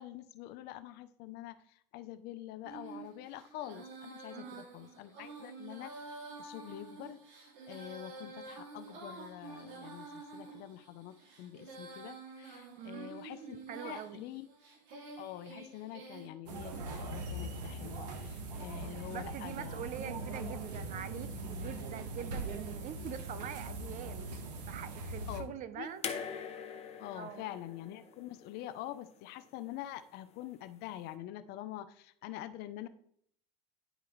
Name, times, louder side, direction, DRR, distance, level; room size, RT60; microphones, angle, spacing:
voice 1, 0.0-7.2 7.7-14.5 15.2-19.9 25.3-25.9 27.0-32.9, left 13 dB, 50° left, 13 dB, 0.6 m, -46 dB
Female singing, 2.6-16.3, right 3 dB, 60° right, 2.3 m, -49 dB
voice 2, 4.3-4.6 12.8-13.1 13.7-14.2 19.1-24.3 24.7-26.0 27.1-27.5, right 9 dB, 40° right, 13 dB, 0.6 m, -44 dB
sound 1, 16.5-25.4, right 2 dB, 85° right, 1.2 m, -41 dB
sound 2, 26.0-29.2 30.4-30.5, left 7 dB, 30° left, 0.9 m, -43 dB
10.0 x 4.7 x 3.1 m, 0.66 s
supercardioid pair, 105°, 21 cm